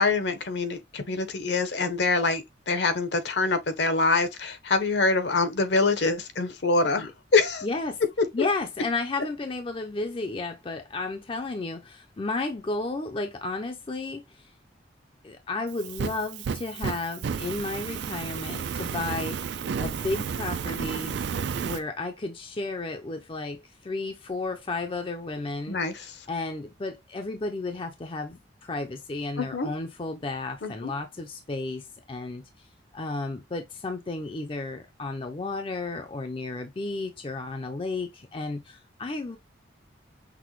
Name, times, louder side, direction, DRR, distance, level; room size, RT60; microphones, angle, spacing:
voice 1, 0.0-7.7 25.7-26.1 29.4-29.7 30.6-30.9, left 3 dB, 65° left, 0.8 m, -25 dB
voice 2, 7.6-8.0 8.3-14.5 15.2-19.4 19.8-21.1 21.6-25.8 26.3-32.4 32.9-39.4, left 3 dB, 30° left, 0.4 m, -33 dB
Fire, 15.7-21.8, right 6 dB, 70° right, 0.4 m, -32 dB
5.9 x 2.1 x 3.1 m
head